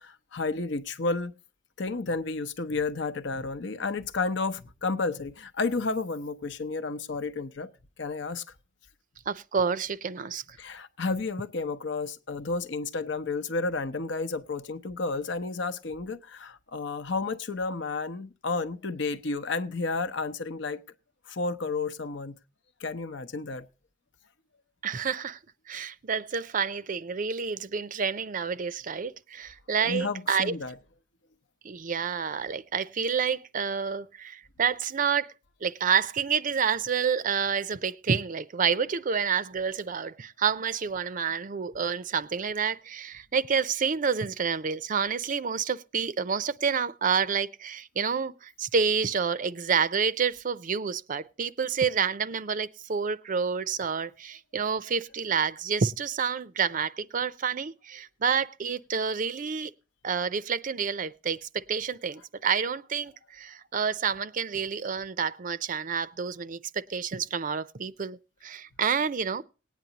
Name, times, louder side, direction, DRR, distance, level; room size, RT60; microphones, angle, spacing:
voice 1, 0.0-1.3 1.8-7.7 8.0-8.4 10.6-20.8 21.3-22.4 22.8-23.7 29.8-30.8 55.2-55.4, left 3 dB, 65° left, 0.8 m, -31 dB
voice 2, 9.3-10.4 24.8-25.4 25.7-30.5 31.6-35.3 35.6-59.7 60.0-69.4, right 6 dB, 45° right, 0.5 m, -29 dB
19.5 x 9.2 x 2.8 m
head